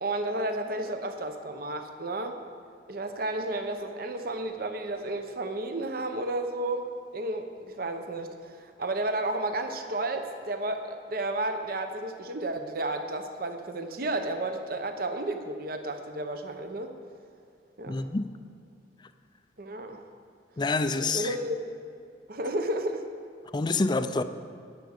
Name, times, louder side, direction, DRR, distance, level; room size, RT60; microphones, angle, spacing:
voice 1, 0.0-2.4 2.9-16.9 17.8-18.1 19.6-20.0 20.9-21.6 22.3-23.0, right 2 dB, 55° right, 6 dB, 0.9 m, -32 dB
voice 2, 17.9-18.3 20.6-21.3 23.5-24.2, left 3 dB, 25° left, 11 dB, 0.4 m, -27 dB
10.5 x 8.3 x 6.5 m, 2.4 s
head